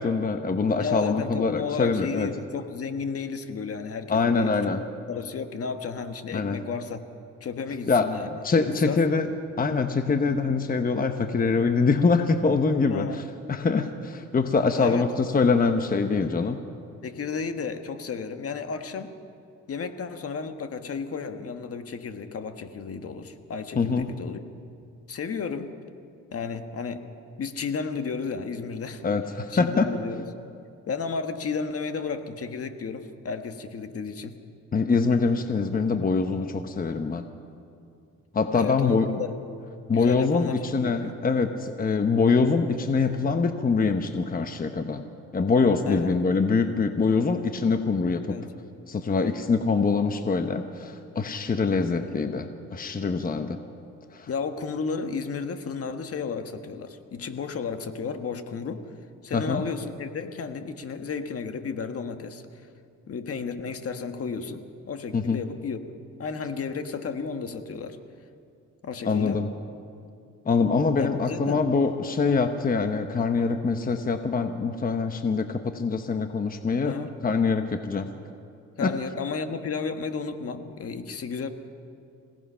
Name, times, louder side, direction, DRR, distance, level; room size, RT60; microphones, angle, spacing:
voice 1, 0.0-2.3 4.1-4.8 6.3-6.6 7.9-8.1 8.4-9.2 9.6-13.2 13.5-16.6 23.8-24.1 29.0-29.9 34.7-37.2 38.3-39.1 39.9-45.0 45.3-48.2 48.9-53.6 54.1-54.3 59.3-59.6 65.1-65.4 69.0-69.5 70.5-78.1 78.8-78.9, left 4 dB, 30° left, 7 dB, 1.1 m, -24 dB
voice 2, 0.8-4.8 5.1-7.0 7.4-8.4 8.6-9.0 12.8-13.2 14.8-15.1 17.0-19.1 19.7-24.4 25.1-25.7 26.3-27.0 27.4-29.1 29.5-30.2 30.9-34.4 38.5-39.4 39.9-41.2 45.8-46.2 48.2-48.5 54.3-58.8 59.2-62.4 63.1-65.8 66.2-68.0 68.8-69.4 71.0-71.6 76.8-77.1 78.8-81.5, left 5 dB, 50° left, 8 dB, 1.5 m, -33 dB
26.5 x 17.5 x 5.7 m, 2.5 s
cardioid pair, 90°, 30 cm